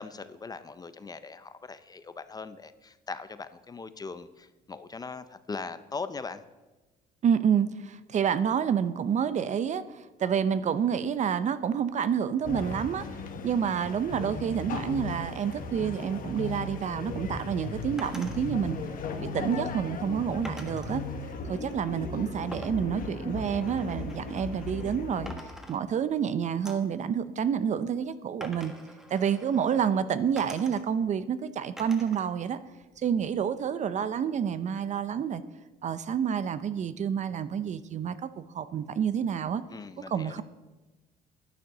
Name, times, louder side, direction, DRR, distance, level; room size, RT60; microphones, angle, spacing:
voice 1, 0.0-6.4 39.7-40.4, left 4 dB, 20° left, 12 dB, 0.6 m, -40 dB
voice 2, 7.2-18.8 19.2-21.0 21.5-25.3 25.7-28.7 29.1-32.6 33.0-35.4 35.8-39.6 40.1-40.4, right 8 dB, 45° right, 14 dB, 0.6 m, -28 dB
sound 1, 12.4-25.3, left 4 dB, 55° left, 1.4 m, -37 dB
sound 2, 18.0-18.4 20.4-21.0 22.5-25.0 25.3-26.2 26.7-27.0 28.4-29.9 30.4-31.1 31.8-32.3 32.7-33.4, equal, 5° right, 1.5 m, -47 dB
10.0 x 9.5 x 6.6 m, 1.2 s
cardioid pair, 110°, 17 cm